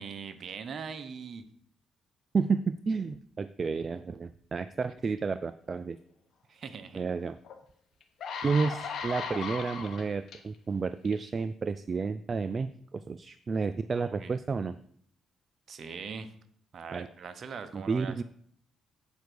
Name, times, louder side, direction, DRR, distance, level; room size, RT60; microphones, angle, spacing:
voice 1, 0.0-1.5 6.5-7.1 14.0-14.4 15.7-16.3 16.7-18.2, right 6 dB, 55° right, 10 dB, 0.9 m, -41 dB
voice 2, 2.3-6.0 6.9-7.4 8.4-14.8 16.9-17.1 17.7-18.2, right 4 dB, 35° right, 12 dB, 0.3 m, -31 dB
sound 1, 7.4-7.5 8.0-10.4 11.1-11.3, left 5 dB, 65° left, 1.3 m, -37 dB
8.1 x 4.6 x 6.8 m, 0.63 s
cardioid pair, 90°, 0 cm